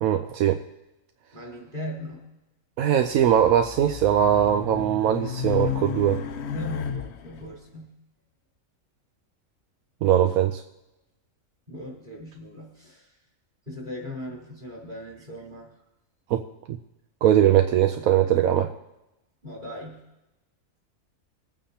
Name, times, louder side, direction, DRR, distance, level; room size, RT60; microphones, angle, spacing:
voice 1, 0.0-0.6 2.8-6.2 10.0-10.6 16.3-16.4 16.7-16.8 17.2-18.7, right 10 dB, 80° right, 6 dB, 1.1 m, -21 dB
voice 2, 1.3-2.2 6.4-7.9 11.7-13.2 13.7-15.8 19.4-20.0, left 1 dB, 35° right, -2 dB, 4.1 m, -38 dB
Race car auto racing, 3.1-7.5, left 7 dB, 60° left, 0.8 m, -33 dB
23.5 x 9.1 x 2.9 m, 0.95 s
omnidirectional pair, 1.5 m